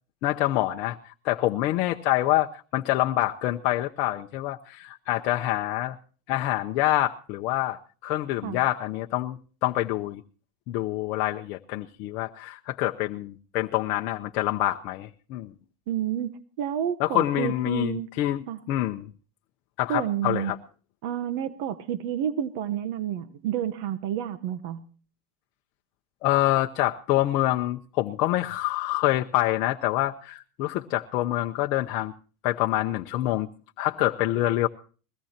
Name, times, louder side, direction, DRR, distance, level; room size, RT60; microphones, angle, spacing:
voice 1, 0.2-6.0 6.3-10.2 10.7-15.5 17.0-19.1 19.8-20.6 26.2-32.1 32.4-33.5 33.8-34.7, left 15 dB, 50° left, 3 dB, 0.7 m, -26 dB
voice 2, 15.9-18.1 18.5-18.6 19.9-20.5 21.0-24.9, right 10 dB, 65° right, 12 dB, 1.0 m, -30 dB
21.5 x 17.5 x 2.9 m, 0.39 s
supercardioid pair, 135°, 0 cm